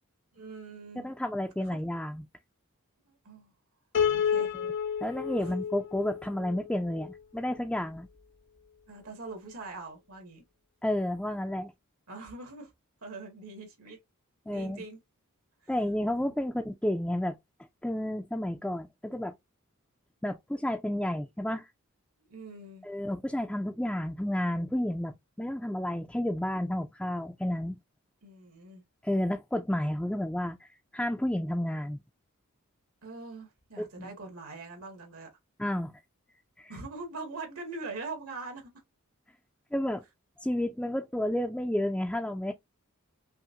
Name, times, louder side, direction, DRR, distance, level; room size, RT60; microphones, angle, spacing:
voice 1, 0.3-1.0 3.1-3.5 4.1-4.5 5.4-5.5 8.9-10.4 12.1-12.7 13.0-14.0 14.5-15.0 15.6-15.7 22.3-22.8 28.2-28.8 33.0-35.3 36.7-38.7, right 3 dB, 75° right, 1.9 m, -42 dB
voice 2, 1.0-2.2 4.5-4.7 5.0-8.1 10.8-11.7 14.5-14.8 15.7-17.4 17.8-19.3 20.2-21.7 22.8-27.8 29.0-32.0 34.0-34.1 35.6-35.9 36.6-36.7 39.7-40.0 40.4-42.5, left 1 dB, 5° left, 0.4 m, -31 dB
Piano, 3.9-7.2, left 7 dB, 55° left, 0.9 m, -30 dB
5.6 x 2.6 x 2.5 m
head